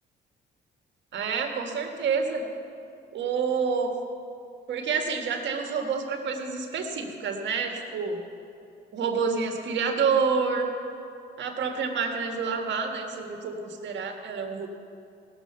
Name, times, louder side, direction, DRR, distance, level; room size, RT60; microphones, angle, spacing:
voice 1, 1.1-2.4 3.1-3.9 4.7-8.2 8.9-10.7 11.4-14.7, right 5 dB, 65° right, 3 dB, 1.7 m, -28 dB
18.0 x 6.9 x 6.7 m, 2.6 s
cardioid pair, 90°, 20 cm